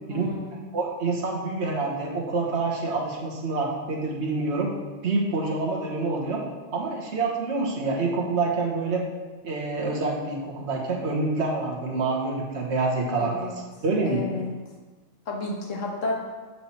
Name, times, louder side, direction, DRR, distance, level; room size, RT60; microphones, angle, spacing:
voice 1, 0.1-0.7 13.2-13.6 14.0-14.5 15.3-16.2, left 2 dB, 85° left, -1 dB, 1.5 m, -32 dB
voice 2, 0.7-4.7 5.0-6.4 6.7-9.0 9.4-13.5 13.8-14.3, right 3 dB, 65° right, -2 dB, 1.5 m, -27 dB
7.6 x 4.4 x 4.3 m, 1.3 s
omnidirectional pair, 1.3 m